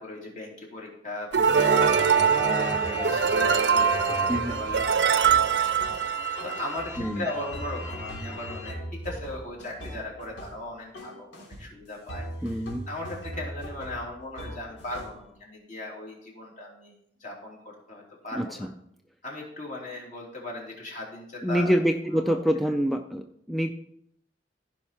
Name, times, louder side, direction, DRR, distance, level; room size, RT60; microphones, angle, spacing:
voice 1, 0.0-5.2 5.5-5.7 6.0-16.9 17.2-18.7 19.2-21.7 22.1-22.4, left 1 dB, 45° left, -2 dB, 3.1 m, -38 dB
sound 1, 1.3-8.7, left 1 dB, 15° left, 2.3 m, -35 dB
sound 2, 1.3-6.8, right 7 dB, 70° right, 0.6 m, -23 dB
sound 3, 4.3-6.1 6.4-10.7 10.9-11.7 12.1-15.3, equal, 80° left, 3.3 m, -40 dB
voice 2, 4.3-4.6 7.0-7.2 12.4-12.9 18.4-18.7 21.4-23.7, equal, ahead, 5 dB, 0.4 m, -26 dB
15.0 x 5.5 x 4.4 m, 0.72 s
head